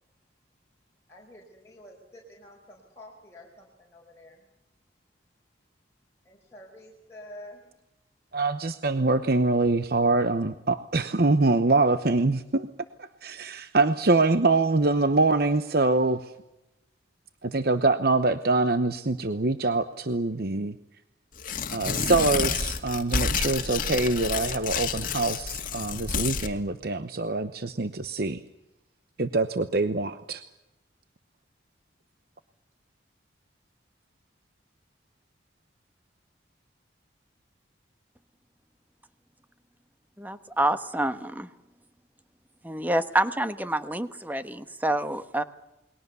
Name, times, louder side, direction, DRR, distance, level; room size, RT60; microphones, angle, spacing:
voice 1, 1.1-4.4 6.2-7.6, left 1 dB, 15° left, -3 dB, 4.7 m, -48 dB
voice 2, 8.3-12.7 13.0-16.3 17.4-20.8 21.7-28.4 29.2-30.4, right 3 dB, 55° right, 11 dB, 0.9 m, -24 dB
Tearing, 21.4-26.5, left 5 dB, 45° left, 2.1 m, -29 dB
voice 3, 40.2-41.5 42.6-45.4, right 1 dB, 10° right, 10 dB, 1.1 m, -27 dB
29.0 x 21.5 x 6.9 m, 0.93 s
head